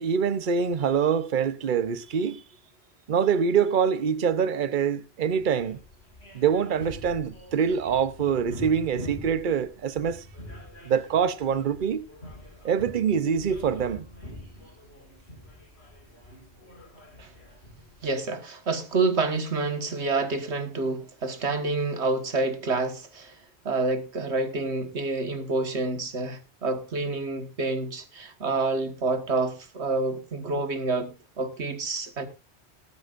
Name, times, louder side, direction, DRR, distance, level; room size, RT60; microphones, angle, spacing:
voice 1, 0.0-2.4 3.1-5.8 6.3-10.2 10.9-12.1 12.6-14.1, right 7 dB, 50° right, 0.9 m, -25 dB
sound 1, 5.3-18.1, left 1 dB, 75° left, 6.8 m, -45 dB
voice 2, 18.0-23.3 23.7-32.3, right 3 dB, 85° right, 1.9 m, -28 dB
18.5 x 12.0 x 2.5 m
omnidirectional pair, 1.1 m